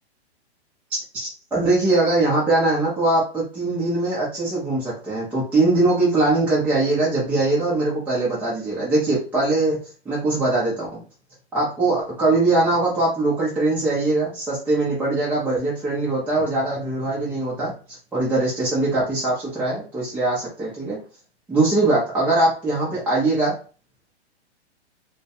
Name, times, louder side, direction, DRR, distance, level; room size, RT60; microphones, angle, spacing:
voice 1, 1.1-9.8 10.1-11.0 11.5-17.7 18.1-21.0 21.5-23.6, right 2 dB, 5° right, -7 dB, 0.5 m, -21 dB
2.2 x 2.2 x 2.8 m, 0.37 s
hypercardioid pair, 125°, 34 cm